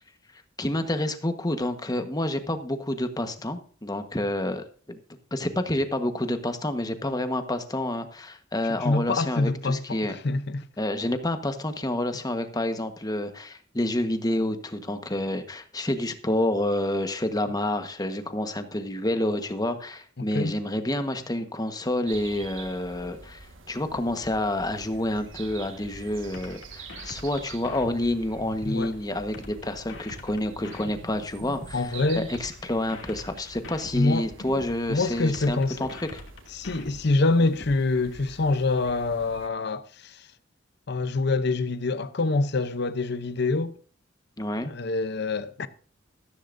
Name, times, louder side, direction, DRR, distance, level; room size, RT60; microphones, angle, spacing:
voice 1, 0.6-5.0 5.3-10.2 10.8-36.2 44.4-44.7, left 1 dB, 20° left, 1.3 m, -29 dB
voice 2, 8.8-10.0 10.2-10.7 20.2-20.6 28.7-28.9 31.7-32.3 33.9-34.3 34.9-35.9 36.5-40.2 40.9-43.7 44.6-45.7, left 3 dB, 60° left, 0.7 m, -25 dB
sound 1, 22.1-39.5, right 4 dB, 90° right, 1.6 m, -46 dB
sound 2, 26.3-28.8 29.3-31.8 32.3-34.8 35.3-37.8, left 1 dB, 75° left, 2.6 m, -43 dB
14.0 x 13.0 x 2.6 m
head